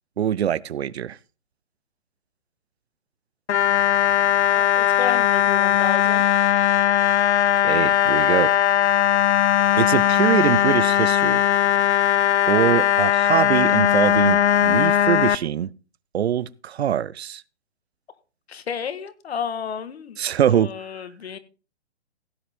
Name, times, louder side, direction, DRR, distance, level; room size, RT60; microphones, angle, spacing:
voice 1, 0.2-1.2 7.6-8.5 9.8-11.4 12.5-15.7 16.1-17.4 20.2-20.7, right 10 dB, 70° right, 0.7 m, -23 dB
sound 1, 3.5-15.4, left 10 dB, 85° left, 0.6 m, -19 dB
voice 2, 4.5-6.2 18.5-20.2 20.5-21.4, left 7 dB, 65° left, 1.7 m, -31 dB
16.5 x 8.8 x 3.6 m
hypercardioid pair, 150°, 34 cm